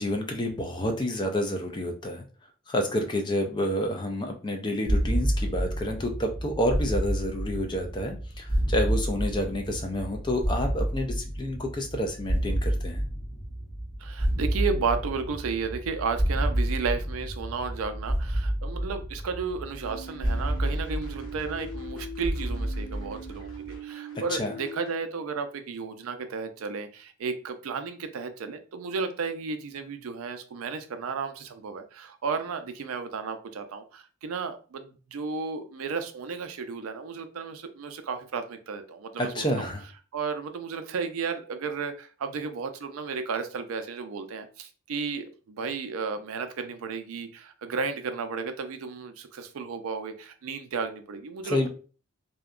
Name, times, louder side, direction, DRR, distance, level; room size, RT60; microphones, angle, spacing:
voice 1, 0.0-2.2 2.7-13.0 24.3-24.5 39.2-39.8 51.5-51.7, left 1 dB, 20° left, 3 dB, 0.4 m, -29 dB
sound 1, 4.9-23.8, right 1 dB, 50° left, 1.3 m, -30 dB
voice 2, 14.0-23.5 23.8-39.7 40.1-51.7, right 5 dB, 85° right, 8 dB, 0.4 m, -33 dB
sound 2, 19.8-25.0, right 1 dB, 90° left, 0.8 m, -41 dB
2.7 x 2.2 x 2.4 m, 0.37 s
head